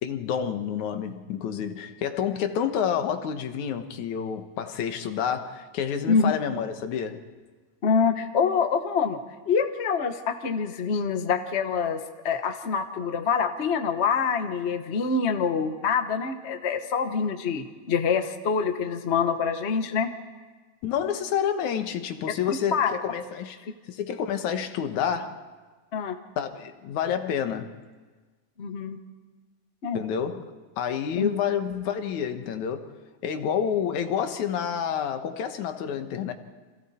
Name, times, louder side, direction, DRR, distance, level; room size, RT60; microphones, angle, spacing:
voice 1, 0.0-7.2 20.8-23.6 23.9-25.4 26.4-27.8 29.9-30.5 30.8-32.9 33.2-36.3, left 8 dB, 80° left, 2.7 m, -29 dB
voice 2, 7.8-9.2 9.5-20.1 22.7-22.9 25.9-26.2 28.6-29.0 29.8-30.0 31.2-31.3, left 5 dB, 50° left, 0.7 m, -25 dB
29.5 x 26.0 x 4.3 m
omnidirectional pair, 3.3 m